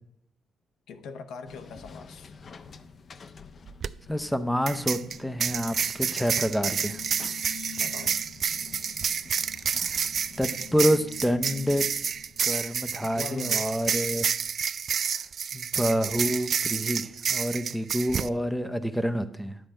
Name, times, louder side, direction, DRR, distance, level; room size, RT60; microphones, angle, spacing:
voice 1, 0.9-2.3 7.7-8.2 9.7-9.9 13.0-13.7, left 5 dB, 80° left, 0.9 m, -41 dB
sound 1, 1.5-12.5, left 7 dB, 45° left, 0.6 m, -47 dB
sound 2, 3.7-3.9 4.7-18.3, right 7 dB, 50° right, 0.3 m, -29 dB
voice 2, 4.1-7.0 9.7-10.0 10.4-11.9 12.4-14.3 15.5-19.6, equal, ahead, 0.7 m, -28 dB
11.0 x 4.3 x 7.6 m
cardioid pair, 90°, 0 cm